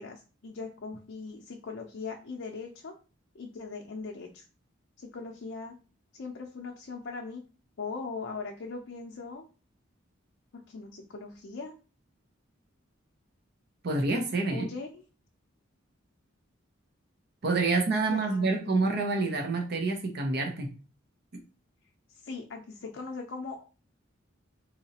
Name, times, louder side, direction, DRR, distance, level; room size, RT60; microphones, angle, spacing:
voice 1, 0.0-2.9 3.3-4.5 5.0-5.8 6.1-7.4 7.8-9.4 10.7-11.7 14.5-15.0 18.1-18.8 22.1-23.6, left 4 dB, 65° left, 1 dB, 0.5 m, -40 dB
voice 2, 13.8-14.7 17.4-20.7, right 3 dB, 50° right, 3 dB, 0.6 m, -27 dB
3.9 x 2.8 x 2.8 m, 0.35 s
head